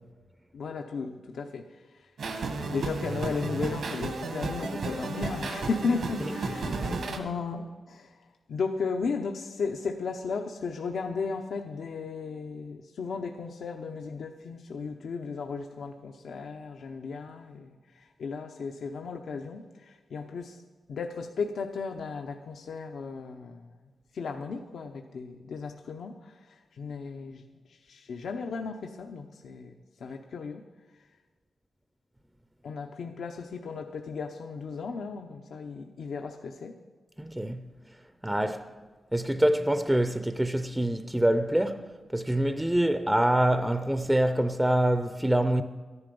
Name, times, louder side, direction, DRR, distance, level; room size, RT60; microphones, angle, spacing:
voice 1, 0.5-2.1 2.7-20.6 20.9-23.7 24.1-30.6 32.6-36.8, left 4 dB, 80° left, 0.7 m, -35 dB
sound 1, 2.2-7.2, right 3 dB, 75° right, 1.6 m, -33 dB
voice 2, 37.2-37.6 38.2-38.7 39.1-41.9 42.1-45.6, right 1 dB, 5° right, 0.5 m, -25 dB
13.5 x 11.0 x 5.3 m
wide cardioid pair, 135°, 0 cm